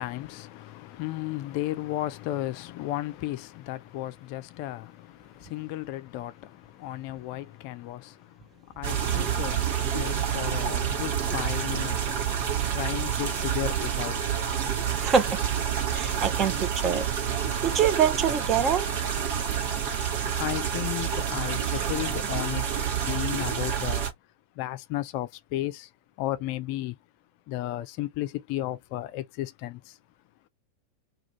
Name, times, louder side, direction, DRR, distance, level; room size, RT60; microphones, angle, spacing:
voice 1, 0.0-5.1 5.4-6.3 6.8-8.1 8.8-9.6 9.8-12.0 12.7-14.1 20.4-22.6 23.0-24.1 24.6-25.9 26.2-26.9 27.5-29.8, left 15 dB, 45° left, 0.4 m, -34 dB
sound 1, 8.8-24.1, right 8 dB, 50° right, 1.0 m, -28 dB
voice 2, 15.0-15.4 15.9-17.1 17.6-18.8, right 7 dB, 30° right, 0.6 m, -24 dB
2.4 x 2.3 x 3.0 m
figure-of-eight pair, 90°, 0 cm